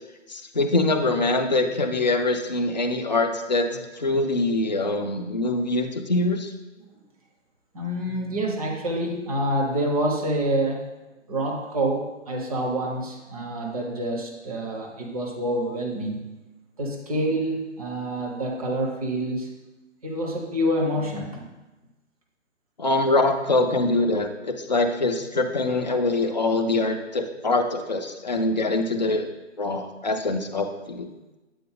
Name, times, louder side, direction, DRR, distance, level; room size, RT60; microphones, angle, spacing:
voice 1, 0.3-3.7 4.0-6.5 22.8-29.3 29.6-31.1, left 2 dB, 35° left, 4 dB, 0.5 m, -24 dB
voice 2, 7.7-10.9 11.3-16.3 16.8-19.5 20.0-21.4, right 1 dB, 30° right, 0 dB, 0.9 m, -27 dB
7.8 x 4.2 x 3.6 m, 1.1 s
figure-of-eight pair, 140°, 38 cm